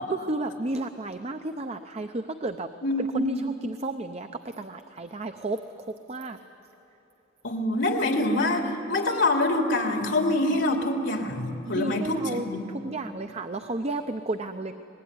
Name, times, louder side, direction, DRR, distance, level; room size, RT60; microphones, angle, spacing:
voice 1, 0.1-2.7 3.0-5.6 6.1-6.4 11.7-12.5 12.8-14.7, right 2 dB, 35° right, 7 dB, 0.7 m, -32 dB
voice 2, 2.8-3.4 7.4-12.6, left 2 dB, 75° left, 3 dB, 3.0 m, -25 dB
24.5 x 20.5 x 9.7 m, 2.9 s
head